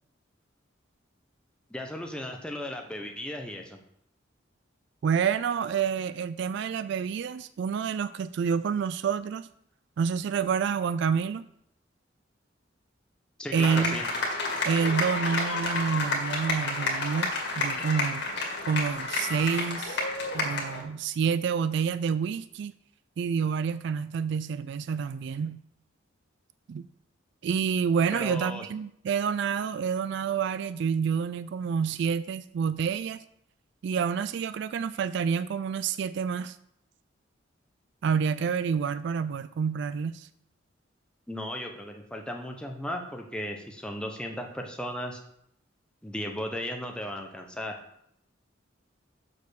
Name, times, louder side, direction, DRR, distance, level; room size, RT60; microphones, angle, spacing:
voice 1, 1.7-3.8 13.4-14.1 28.1-28.7 41.3-45.2 46.0-47.8, left 1 dB, 5° left, 2 dB, 0.9 m, -36 dB
voice 2, 5.0-9.5 10.0-11.4 13.5-14.0 14.6-18.3 18.7-20.0 20.3-22.7 23.2-25.6 26.7-26.9 27.4-33.2 33.8-36.6 38.0-40.3, right 6 dB, 60° right, 14 dB, 0.3 m, -28 dB
sound 1, 13.5-20.8, left 2 dB, 60° left, 2.1 m, -30 dB
6.7 x 5.2 x 6.4 m, 0.74 s
head